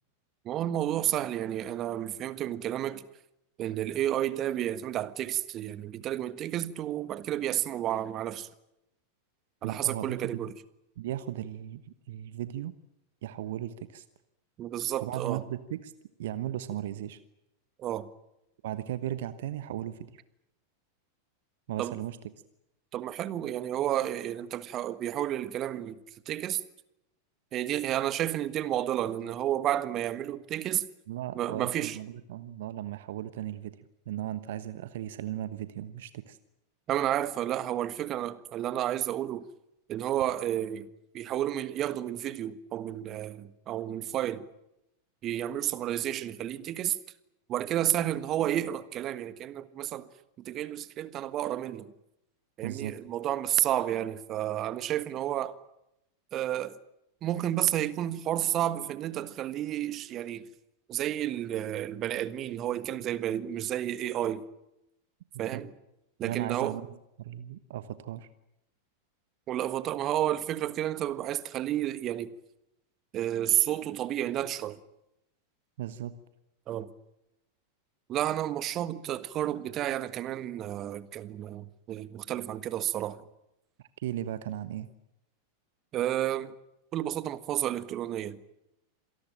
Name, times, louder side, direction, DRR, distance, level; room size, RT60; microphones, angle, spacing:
voice 1, 0.4-3.0 3.6-8.5 9.6-10.5 14.6-15.4 17.8-18.1 21.8-21.9 22.9-26.0 26.2-26.6 27.5-30.9 31.3-32.0 36.9-39.4 39.9-40.9 41.1-44.4 45.2-47.0 47.5-50.1 50.4-51.9 52.6-55.5 56.3-56.8 57.2-60.5 60.9-64.4 65.4-65.7 66.2-66.8 69.5-72.3 73.1-74.8 76.7-76.9 78.1-83.2 85.9-86.5 86.9-88.4, right 12 dB, 30° right, 1.4 m, -31 dB
voice 2, 9.6-10.5 11.0-12.7 13.2-14.0 15.0-15.9 16.2-17.2 18.6-20.2 21.7-22.2 31.1-36.4 52.6-53.0 65.3-65.6 66.2-68.3 75.8-76.1 83.8-84.9, right 12 dB, 55° right, 1.2 m, -36 dB
27.0 x 19.0 x 8.9 m
figure-of-eight pair, 90°, 0 cm